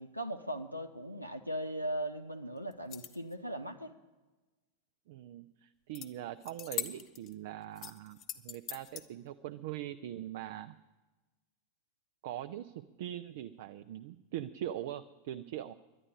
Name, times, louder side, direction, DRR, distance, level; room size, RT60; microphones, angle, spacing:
voice 1, 0.0-3.9, right 1 dB, 90° right, 6 dB, 0.8 m, -38 dB
sound 1, 2.7-3.3 5.9-6.1 6.4-7.3 7.8-9.0, left 9 dB, 35° left, 1.0 m, -41 dB
voice 2, 5.1-8.2 8.4-10.7 12.2-15.7, right 12 dB, 50° right, 9 dB, 0.5 m, -42 dB
11.0 x 11.0 x 9.7 m, 1.2 s
figure-of-eight pair, 90°, 0 cm